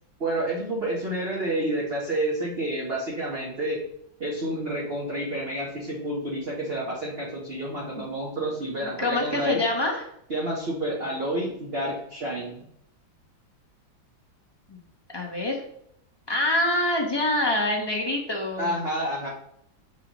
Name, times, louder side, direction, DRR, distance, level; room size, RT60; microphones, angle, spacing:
voice 1, 0.2-3.8 4.2-9.6 10.3-12.6 18.6-19.3, right 1 dB, 35° right, -5 dB, 1.1 m, -29 dB
voice 2, 8.8-10.1 14.7-14.8 15.1-15.6 16.3-18.7, left 1 dB, 25° left, -1 dB, 0.6 m, -25 dB
7.2 x 5.1 x 3.0 m, 0.72 s
omnidirectional pair, 2.1 m